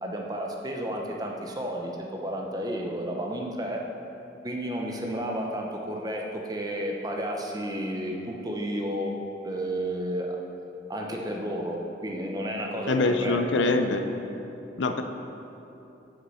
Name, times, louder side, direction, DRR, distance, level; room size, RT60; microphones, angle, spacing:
voice 1, 0.0-3.8 4.4-9.1 9.4-10.4 10.9-13.7, equal, 20° right, 0 dB, 0.8 m, -32 dB
voice 2, 12.9-14.0 14.8-15.0, left 3 dB, 80° left, 7 dB, 0.6 m, -24 dB
8.5 x 6.5 x 5.5 m, 2.9 s
head